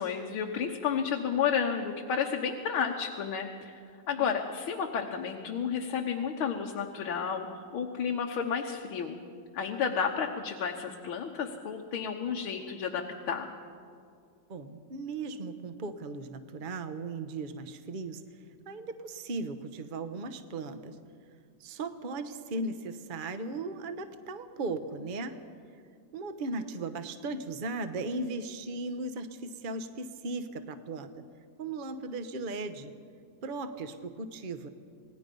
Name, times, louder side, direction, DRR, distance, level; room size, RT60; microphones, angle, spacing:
voice 1, 0.0-3.8 4.1-9.2 9.5-13.5, left 7 dB, 85° left, 1 dB, 2.0 m, -31 dB
voice 2, 14.5-18.2 18.7-21.0 21.6-25.4 26.1-31.2 31.6-32.9 33.4-34.7, right 3 dB, 35° right, 9 dB, 0.8 m, -37 dB
27.5 x 19.5 x 5.4 m, 2.2 s
omnidirectional pair, 2.2 m